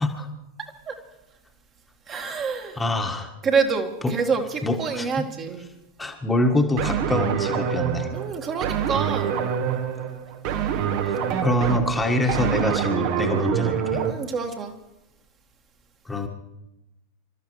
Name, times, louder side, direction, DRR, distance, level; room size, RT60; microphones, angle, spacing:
voice 1, 0.6-1.0 2.1-2.8 3.4-5.7 8.1-9.5 14.1-14.7, right 5 dB, 25° right, 3 dB, 1.8 m, -27 dB
voice 2, 2.8-3.3 4.0-4.2 4.6-5.3 6.0-8.1 11.4-14.0 16.1-16.3, left 1 dB, 10° left, 2 dB, 1.6 m, -25 dB
sound 1, 6.8-14.1, right 8 dB, 45° right, 1.4 m, -25 dB
27.5 x 13.0 x 3.2 m, 0.95 s
figure-of-eight pair, 90°, 0 cm